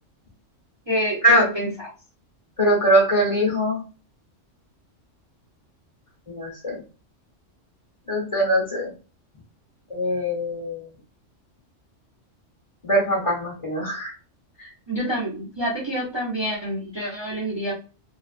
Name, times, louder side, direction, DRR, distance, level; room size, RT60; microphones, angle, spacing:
voice 1, 0.9-1.9 14.9-17.7, equal, 30° right, -5 dB, 0.6 m, -27 dB
voice 2, 2.6-3.8 6.3-6.8 8.1-8.9 9.9-10.9 12.8-14.1 14.6-14.7, equal, 30° left, -4 dB, 0.9 m, -22 dB
2.5 x 2.3 x 2.3 m, 0.34 s
omnidirectional pair, 1.3 m